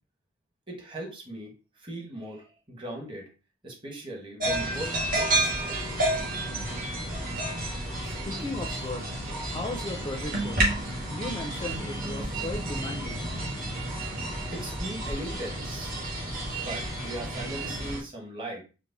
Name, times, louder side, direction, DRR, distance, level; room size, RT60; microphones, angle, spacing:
voice 1, 0.7-3.3 3.6-6.0 14.0-15.9 16.5-18.6, right 1 dB, 25° right, -1 dB, 1.2 m, -39 dB
sound 1, 4.4-18.0, right 1 dB, 45° right, 1.5 m, -31 dB
voice 2, 8.0-9.1 9.4-10.8 11.1-13.3, left 2 dB, 25° left, 3 dB, 0.5 m, -36 dB
4.7 x 2.1 x 3.9 m, 0.32 s
head